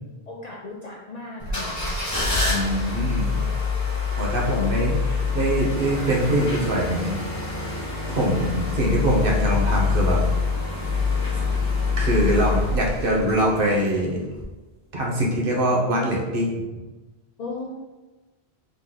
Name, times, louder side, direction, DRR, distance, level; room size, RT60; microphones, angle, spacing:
voice 1, 0.3-2.1 17.4-17.7, left 3 dB, 55° left, -1 dB, 0.5 m, -36 dB
sound 1, 1.4-13.9 14.3-14.4, left 4 dB, 15° left, 1.0 m, -25 dB
voice 2, 2.4-3.3 4.2-7.1 8.1-10.2 12.0-14.2 14.9-16.6, right 1 dB, 60° right, -2 dB, 1.0 m, -23 dB
3.9 x 3.1 x 3.7 m, 1.1 s
omnidirectional pair, 1.1 m